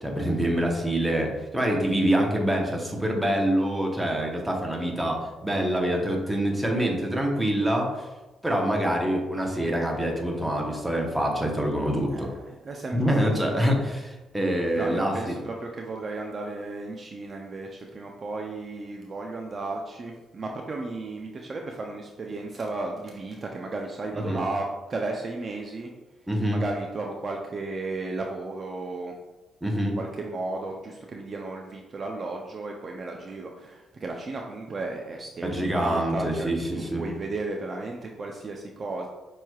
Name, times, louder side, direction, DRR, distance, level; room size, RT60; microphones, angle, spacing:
voice 1, 0.0-8.1 8.4-12.3 12.9-15.3 24.1-24.4 26.3-26.6 29.6-30.0 35.4-37.1, right 1 dB, 5° right, 0 dB, 0.8 m, -25 dB
voice 2, 12.1-13.4 14.7-25.9 26.5-29.1 29.8-39.1, right 3 dB, 40° right, 1 dB, 0.4 m, -34 dB
5.5 x 3.1 x 2.3 m, 1.1 s
cardioid pair, 90°, 0 cm